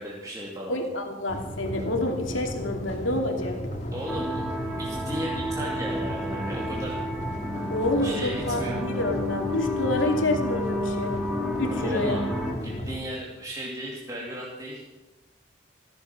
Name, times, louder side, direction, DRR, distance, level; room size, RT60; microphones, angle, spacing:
voice 1, 0.0-0.8 3.9-4.5 4.8-7.0 8.0-8.8 11.8-12.3 12.6-14.8, right 1 dB, 20° right, -4 dB, 2.4 m, -35 dB
voice 2, 0.7-3.6 7.7-11.1 11.6-12.2, left 1 dB, 85° left, 2 dB, 2.7 m, -28 dB
sound 1, 1.3-13.0, equal, 35° left, 2.0 m, -35 dB
sound 2, 4.1-12.5, left 1 dB, ahead, 2.7 m, -31 dB
15.5 x 14.0 x 6.0 m, 1.1 s
head